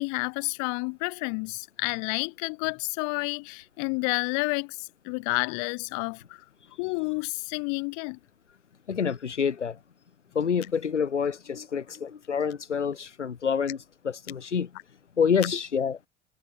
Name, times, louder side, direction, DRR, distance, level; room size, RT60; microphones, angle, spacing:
voice 1, 0.0-6.4 6.8-8.2, left 38 dB, 55° left, 7.4 m, -30 dB
voice 2, 8.9-9.8 10.3-13.8 14.0-14.7 15.2-16.0, left 6 dB, 80° left, 6.6 m, -27 dB
figure-of-eight pair, 65°, 35 cm